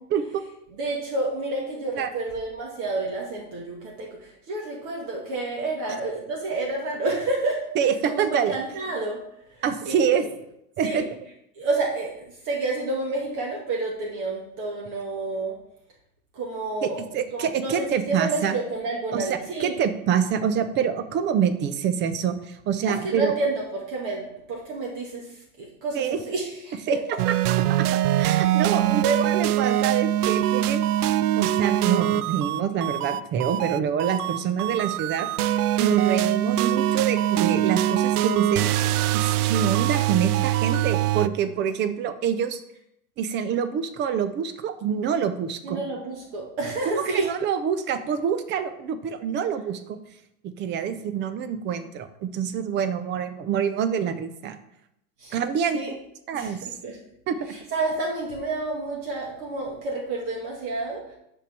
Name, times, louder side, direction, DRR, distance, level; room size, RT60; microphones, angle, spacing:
voice 1, 0.8-7.6 8.0-9.2 9.5-10.3 10.8-11.1 11.5-15.6 16.3-17.0 17.3-19.7 22.9-27.2 28.6-28.8 45.6-47.3 55.2-55.4 55.7-55.9 56.3-57.0 57.5-61.1, right 2 dB, 50° right, -2 dB, 1.8 m, -30 dB
voice 2, 7.8-8.6 9.6-10.3 10.8-11.0 16.8-18.5 19.1-19.2 19.6-23.3 26.0-26.2 26.9-27.0 27.7-30.8 31.4-35.3 35.8-38.7 39.1-42.6 43.2-45.8 46.9-50.0 50.6-54.6 55.3-55.8 56.3-56.6 57.3-57.5, right 8 dB, 25° right, 11 dB, 0.5 m, -26 dB
sound 1, 27.2-41.3, right 13 dB, 75° right, 0.5 m, -23 dB
5.5 x 5.4 x 6.1 m, 0.79 s
hypercardioid pair, 120°, 46 cm